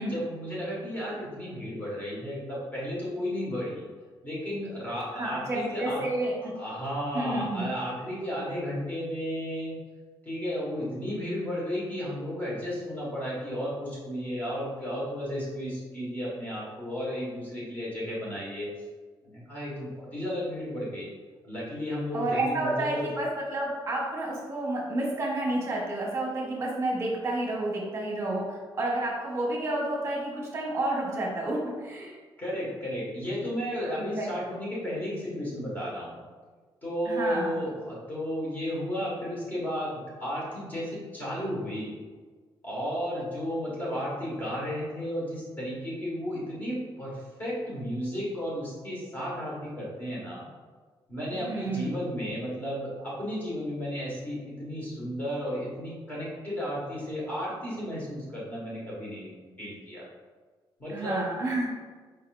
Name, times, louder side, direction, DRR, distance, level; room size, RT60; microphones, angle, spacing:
voice 1, 0.1-3.8 4.2-6.1 6.5-9.8 10.2-18.7 19.2-21.1 21.4-23.1 32.4-36.2 36.8-41.9 42.6-50.5 51.1-60.0 60.8-61.4, equal, 20° left, -6 dB, 1.5 m, -33 dB
voice 2, 5.1-6.5 7.1-7.6 22.1-32.2 33.9-34.3 37.0-37.6 51.3-51.9 60.9-61.7, right 1 dB, 30° right, -2 dB, 1.0 m, -30 dB
4.6 x 4.1 x 2.5 m, 1.5 s
cardioid pair, 165°, 9 cm